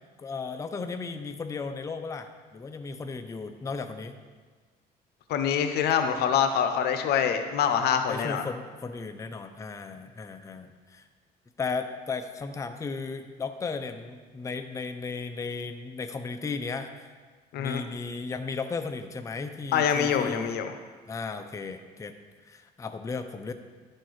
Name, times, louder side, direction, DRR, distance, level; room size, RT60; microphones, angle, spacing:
voice 1, 0.2-4.1 8.1-11.0 11.6-17.1 17.6-20.5 21.1-22.2 22.4-23.5, left 4 dB, 20° left, 7 dB, 0.5 m, -35 dB
voice 2, 5.3-8.4 17.5-17.8 19.7-20.7, left 8 dB, 75° left, 8 dB, 0.7 m, -25 dB
11.0 x 4.4 x 4.7 m, 1.5 s
cardioid pair, 110°, 17 cm